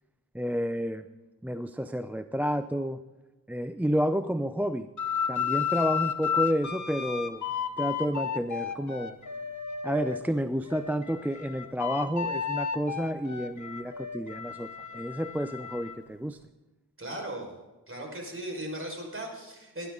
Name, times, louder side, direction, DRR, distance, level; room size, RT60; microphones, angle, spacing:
voice 1, 0.3-1.1 1.4-3.0 3.5-4.9 5.3-7.4 7.8-9.2 9.8-16.4, equal, 5° right, 10 dB, 0.6 m, -30 dB
sound 1, 5.0-10.2 10.7-16.0, left 7 dB, 55° left, 1.3 m, -33 dB
voice 2, 17.0-17.5 17.9-19.9, right 1 dB, 35° right, 1 dB, 5.3 m, -37 dB
19.5 x 11.0 x 3.9 m, 1.1 s
cardioid pair, 45°, 36 cm